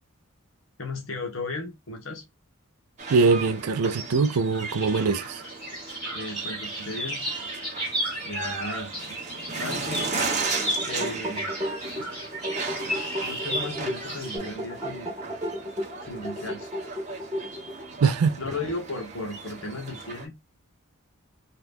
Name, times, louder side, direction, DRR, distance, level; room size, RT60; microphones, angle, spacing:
voice 1, 0.8-2.2 6.1-7.2 8.2-9.2 9.6-10.1 10.9-11.5 13.2-15.2 16.0-16.7 18.4-20.3, left 2 dB, 60° left, 1.0 m, -35 dB
sound 1, 3.0-20.3, right 4 dB, 30° right, 0.8 m, -36 dB
voice 2, 3.1-5.4 18.0-18.4, right 4 dB, 85° right, 0.4 m, -22 dB
sound 2, 4.5-14.4, equal, 5° left, 1.5 m, -34 dB
sound 3, 10.4-17.9, equal, 15° right, 1.2 m, -35 dB
2.8 x 2.4 x 3.4 m
head